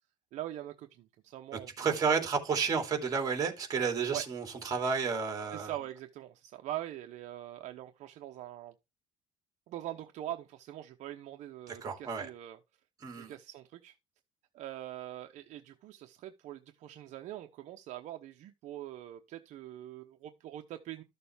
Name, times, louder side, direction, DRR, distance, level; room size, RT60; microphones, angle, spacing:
voice 1, 0.3-2.2 4.0-4.3 5.5-8.7 9.7-12.6 13.2-13.9 14.5-21.0, right 13 dB, 55° right, 0.9 m, -43 dB
voice 2, 1.8-5.7 11.7-12.3 13.0-13.3, right 5 dB, 25° right, 2.8 m, -31 dB
13.0 x 6.8 x 3.5 m
cardioid pair, 150°, 15 cm